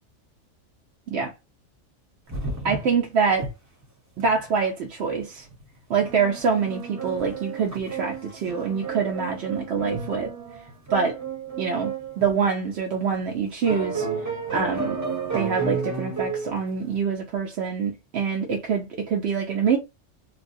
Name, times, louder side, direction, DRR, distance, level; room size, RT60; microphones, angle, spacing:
sound 1, 2.3-3.0 3.3-3.5 3.8-3.9 4.2-4.5 5.5-5.6 5.9-12.3 12.9-13.0 13.6-16.5, right 4 dB, 15° right, 0.7 m, -32 dB
voice 1, 2.6-3.5 4.2-5.4 5.9-10.3 10.9-11.2 11.6-14.1 14.5-15.0 15.3-19.8, right 6 dB, 60° right, 0.8 m, -25 dB
3.3 x 2.2 x 2.6 m
omnidirectional pair, 1.4 m